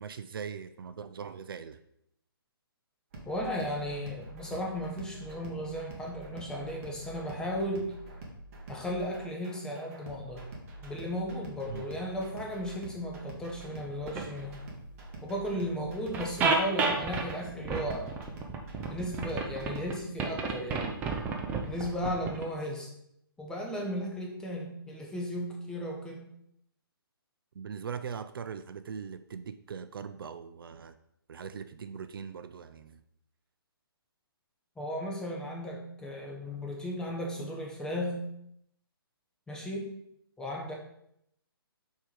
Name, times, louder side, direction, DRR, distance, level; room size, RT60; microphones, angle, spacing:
voice 1, 0.0-1.8 11.7-11.8 27.6-30.9 31.3-33.0, right 6 dB, 65° right, 11 dB, 0.4 m, -40 dB
sound 1, 3.1-19.9, right 1 dB, 35° right, 1.5 m, -46 dB
voice 2, 3.2-7.9 8.7-10.4 10.8-14.6 15.2-18.1 18.9-21.0 21.7-22.9 23.4-26.2 34.8-38.2 39.5-39.9 40.4-40.7, equal, 5° left, 0 dB, 0.9 m, -35 dB
sound 2, 13.9-14.4 15.6-15.7 16.1-17.3 17.6-19.9 20.2-22.4, right 4 dB, 15° right, 0.6 m, -31 dB
4.6 x 4.6 x 5.1 m, 0.75 s
hypercardioid pair, 145°, 13 cm